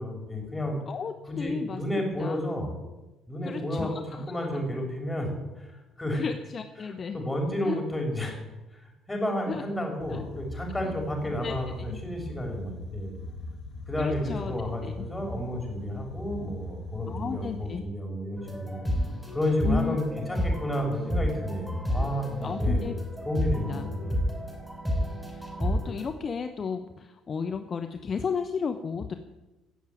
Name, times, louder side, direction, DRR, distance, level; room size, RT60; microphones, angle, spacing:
voice 1, 0.0-0.8 1.3-2.7 3.3-5.3 5.6-6.2 6.8-8.3 8.7-13.2 13.9-18.8 19.3-22.9 23.2-24.2, left 1 dB, 15° left, 2 dB, 6.0 m, -31 dB
voice 2, 0.9-1.8 2.2-2.4 3.4-4.2 6.1-7.2 7.6-7.8 9.5-9.6 10.1-10.2 11.2-11.5 11.9-12.0 14.0-14.6 14.8-15.1 17.1-17.8 19.6-20.0 22.4-22.9 23.3-23.9 25.3-29.1, left 6 dB, 45° left, 9 dB, 0.9 m, -33 dB
sound 1, 10.0-17.8, left 1 dB, 60° left, 2.3 m, -41 dB
sound 2, 18.4-26.1, equal, ahead, 6.0 m, -30 dB
17.0 x 7.3 x 9.2 m, 1.1 s
supercardioid pair, 75°, 0 cm